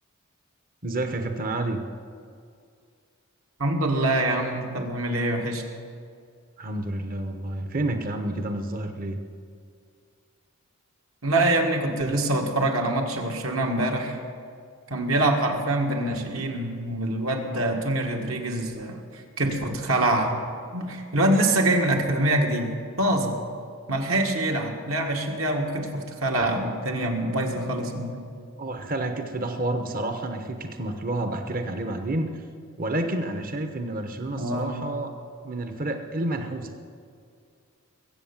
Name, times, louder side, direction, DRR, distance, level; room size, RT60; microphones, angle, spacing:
voice 1, 0.8-1.8 6.6-9.2 28.6-32.4 32.8-35.1 35.4-36.7, right 1 dB, 40° right, 6 dB, 1.0 m, -29 dB
voice 2, 3.6-5.6 11.2-14.2 14.9-20.4 20.7-22.7 23.0-23.4 23.9-28.2 34.4-34.8, right 1 dB, 70° right, 2 dB, 1.9 m, -25 dB
22.0 x 8.1 x 7.3 m, 2.3 s
head